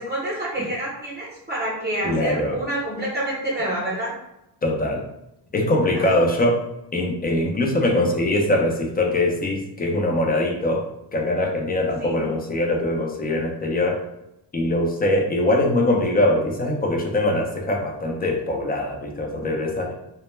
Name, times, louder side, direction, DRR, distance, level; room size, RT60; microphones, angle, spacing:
voice 1, 0.0-4.1 5.9-6.1 12.0-12.2, right 1 dB, 20° right, -7 dB, 0.7 m, -28 dB
voice 2, 2.0-2.6 4.6-5.0 5.5-6.7 6.9-14.0 14.5-19.9, left 1 dB, 20° left, 0 dB, 0.4 m, -22 dB
2.2 x 2.1 x 3.0 m, 0.88 s
cardioid pair, 105°, 48 cm